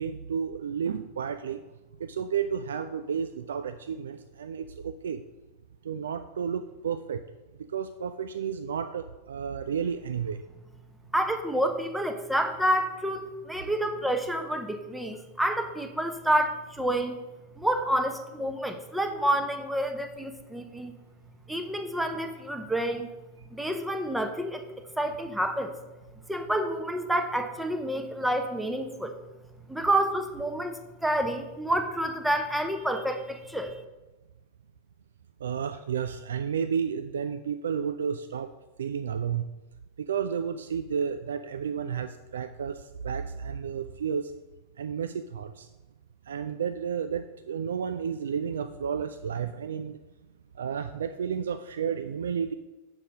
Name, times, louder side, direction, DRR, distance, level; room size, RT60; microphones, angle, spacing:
voice 1, 0.0-1.6 2.0-5.2 5.8-7.2 7.7-10.4 35.4-38.5 38.8-39.4 40.0-44.3 44.8-45.7 46.3-50.0 50.6-52.5, right 7 dB, 65° right, 10 dB, 0.3 m, -32 dB
voice 2, 11.1-17.2 17.6-20.9 21.5-23.1 23.5-24.6 25.0-25.7 26.3-29.1 29.7-33.7, right 1 dB, 5° right, 6 dB, 0.9 m, -28 dB
7.1 x 5.3 x 6.2 m, 1.1 s
figure-of-eight pair, 90°, 0 cm